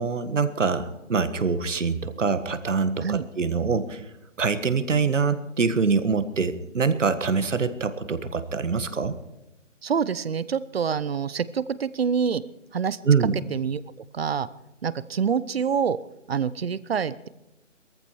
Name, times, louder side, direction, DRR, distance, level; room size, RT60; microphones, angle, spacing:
voice 1, 0.0-4.1 4.4-9.2 13.0-13.3, right 5 dB, 75° right, 12 dB, 1.7 m, -24 dB
voice 2, 9.8-12.4 12.7-13.0 13.3-13.8 14.1-14.5 14.8-16.0 16.3-17.3, right 7 dB, 55° right, 18 dB, 0.9 m, -26 dB
18.5 x 14.5 x 4.7 m, 0.93 s
figure-of-eight pair, 155°, 37 cm